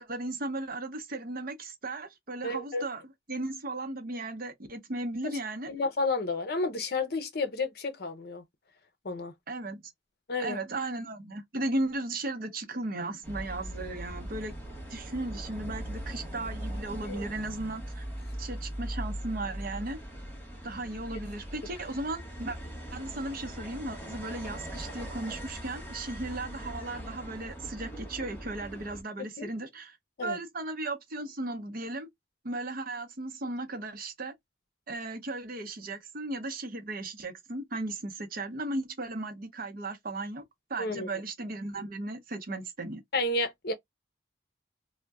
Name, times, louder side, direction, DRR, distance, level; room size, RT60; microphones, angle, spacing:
voice 1, 0.0-5.7 9.5-9.9 10.4-14.5 14.9-18.0 18.4-20.0 20.6-22.6 22.9-32.1 32.4-34.3 34.9-40.4 40.7-43.0, right 2 dB, 50° right, 0.7 m, -36 dB
voice 2, 2.4-2.8 5.7-8.4 9.0-9.3 10.3-10.6 17.0-17.2 29.2-29.5 30.2-30.4 40.8-41.1 43.1-43.7, left 2 dB, 60° left, 0.7 m, -31 dB
sound 1, 13.2-29.0, equal, 10° left, 1.0 m, -40 dB
2.5 x 2.1 x 3.4 m
head